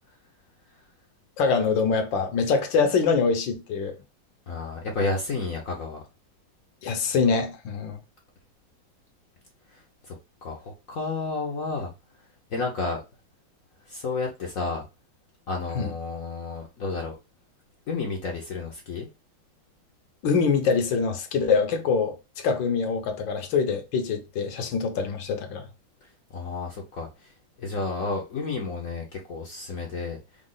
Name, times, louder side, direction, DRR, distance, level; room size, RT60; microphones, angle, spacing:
voice 1, 1.4-3.9 6.8-8.0 15.7-15.9 20.2-25.7, left 5 dB, 70° left, 1.6 m, -24 dB
voice 2, 4.5-6.0 9.7-9.8 10.1-10.2 10.4-11.9 12.5-13.0 13.9-14.8 15.5-17.2 17.9-19.1 26.3-27.3 27.6-30.2, left 3 dB, 55° left, 1.0 m, -31 dB
5.0 x 2.4 x 3.8 m
omnidirectional pair, 2.2 m